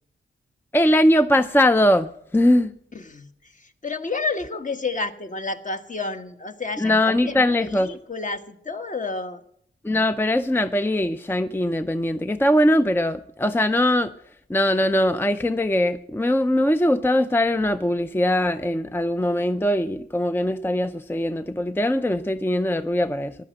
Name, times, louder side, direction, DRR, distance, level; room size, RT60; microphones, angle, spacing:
voice 1, 0.7-2.7 6.8-8.0 9.8-14.1 14.5-23.3, left 1 dB, 10° left, 10 dB, 0.5 m, -21 dB
voice 2, 2.9-7.3 7.6-9.4, left 3 dB, 40° left, 7 dB, 1.4 m, -30 dB
15.5 x 11.0 x 7.7 m, 0.69 s
wide cardioid pair, 85°, 21 cm